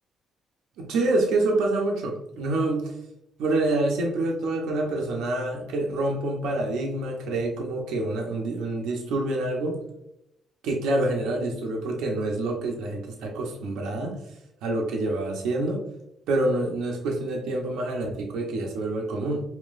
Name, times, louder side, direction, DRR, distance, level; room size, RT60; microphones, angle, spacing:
voice 1, 0.8-2.9 3.4-9.8 10.6-14.2 14.6-15.8 16.3-19.4, right 2 dB, 85° right, 0 dB, 0.8 m, -27 dB
5.2 x 2.9 x 2.5 m, 0.82 s
cardioid pair, 90°, 0 cm